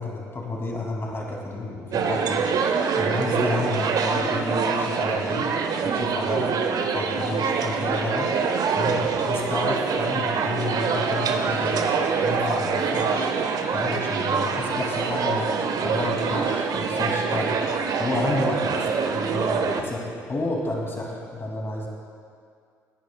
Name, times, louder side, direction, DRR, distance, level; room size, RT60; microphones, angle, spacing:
voice 1, 0.0-2.4 3.0-5.5 5.8-6.5 6.9-8.3 8.8-11.8 12.2-13.3 13.7-17.6 18.0-20.0 20.3-21.9, left 2 dB, 30° left, -1 dB, 2.4 m, -30 dB
sound 1, 1.9-19.8, right 5 dB, 45° right, 0.8 m, -25 dB
17.0 x 10.5 x 2.3 m, 2.3 s
figure-of-eight pair, 50°, 8 cm